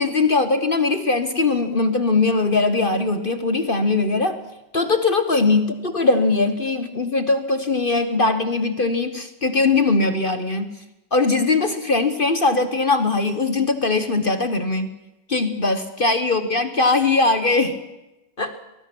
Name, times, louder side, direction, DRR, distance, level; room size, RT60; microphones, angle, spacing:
voice 1, 0.0-4.4 4.7-10.7 11.1-14.9 15.3-17.8 18.4-18.6, left 3 dB, 35° left, 10 dB, 1.0 m, -20 dB
24.0 x 19.5 x 6.0 m, 0.96 s
omnidirectional pair, 1.9 m